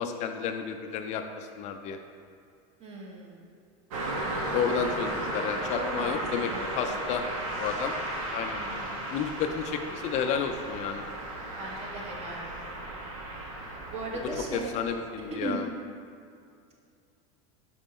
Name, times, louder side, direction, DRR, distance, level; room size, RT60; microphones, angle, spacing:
voice 1, 0.0-2.0 4.5-6.5 6.7-7.2 7.6-7.9 8.3-8.6 9.1-11.0 14.5-15.7, left 7 dB, 40° left, 6 dB, 0.4 m, -31 dB
voice 2, 2.8-3.5 5.7-6.2 6.5-6.7 8.6-9.0 11.6-12.6 13.9-14.7 15.4-15.7, right 2 dB, 35° right, -1 dB, 1.3 m, -37 dB
Car passing by, 3.9-15.4, right 1 dB, 80° right, 1.2 m, -35 dB
5.3 x 5.1 x 4.2 m, 2.4 s
supercardioid pair, 120°, 17 cm